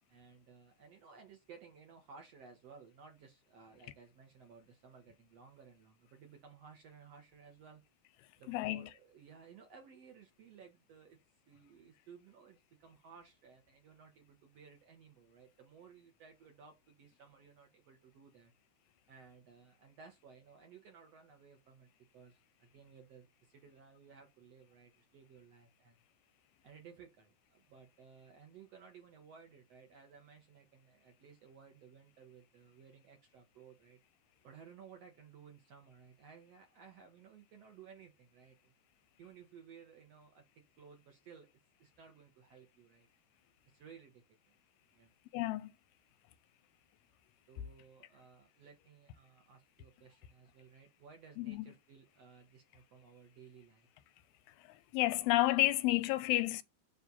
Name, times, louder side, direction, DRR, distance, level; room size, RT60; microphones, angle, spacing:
voice 1, 0.1-7.8 8.4-11.2 11.5-18.5 19.1-26.0 26.6-34.0 34.4-38.7 39.2-40.4 40.8-41.5 41.8-43.1 43.7-44.6 44.9-45.1 47.5-53.9, right 6 dB, 60° right, 1.8 m, -58 dB
voice 2, 8.5-8.9 45.3-45.7 51.4-51.7 54.7-56.6, left 17 dB, 85° left, 2.5 m, -31 dB
9.5 x 3.4 x 4.1 m
omnidirectional pair, 4.4 m